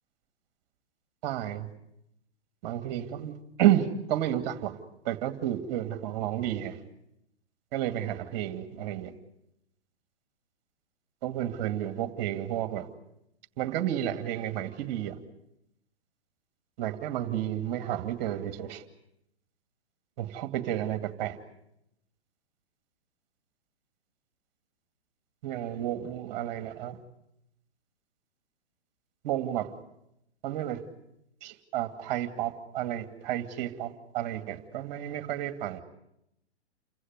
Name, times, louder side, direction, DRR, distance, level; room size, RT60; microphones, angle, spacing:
voice 1, 1.2-1.7 2.6-4.7 5.0-6.8 7.7-9.1 11.2-12.9 13.6-15.2 16.8-18.8 20.2-21.4 25.4-27.0 29.2-29.7 30.4-30.8 31.4-35.8, right 12 dB, 40° right, 9 dB, 2.4 m, -31 dB
29.0 x 16.0 x 9.5 m, 0.83 s
hypercardioid pair, 130°, 34 cm